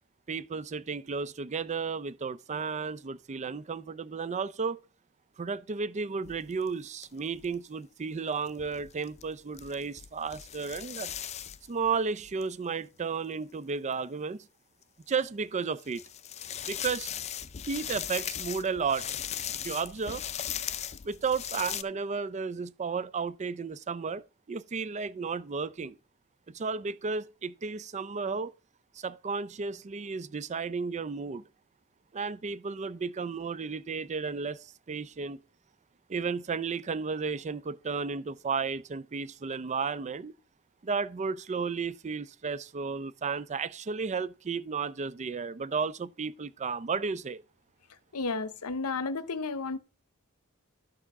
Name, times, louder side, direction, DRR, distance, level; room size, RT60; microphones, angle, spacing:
voice 1, 0.3-4.8 5.4-11.1 11.7-14.4 15.1-16.0 16.6-17.1 17.7-19.1 19.6-20.2 21.0-26.0 26.5-28.5 29.0-31.4 32.1-35.4 36.1-40.3 40.8-47.4, right 5 dB, 30° right, 0.4 m, -33 dB
sound 1, 6.2-6.7 7.0-7.1 7.3-7.5 8.5-12.4 13.9-14.0 14.8-14.9 15.8-21.8, left 10 dB, 30° left, 0.4 m, -38 dB
voice 2, 48.1-49.8, left 3 dB, 90° left, 0.8 m, -32 dB
12.0 x 6.8 x 3.6 m
head